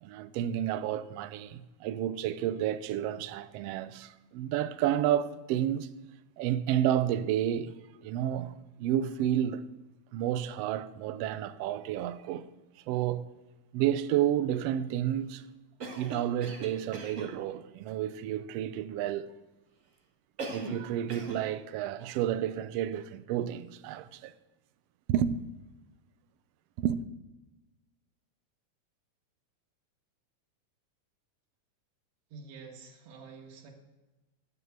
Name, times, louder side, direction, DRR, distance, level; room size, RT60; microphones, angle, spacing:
voice 1, 0.0-5.9 6.4-7.7 8.0-8.5 8.8-9.6 10.1-12.5 12.9-13.2 13.7-15.4 16.0-19.3 20.5-24.3 25.1-25.4 26.8-27.0, right 11 dB, 80° right, 1.4 m, -30 dB
Cough, 15.8-17.4 20.4-20.8 21.1-21.5, right 3 dB, 40° right, 1.1 m, -39 dB
voice 2, 32.3-33.7, right 4 dB, 60° right, 2.8 m, -48 dB
10.0 x 7.4 x 8.1 m
omnidirectional pair, 3.4 m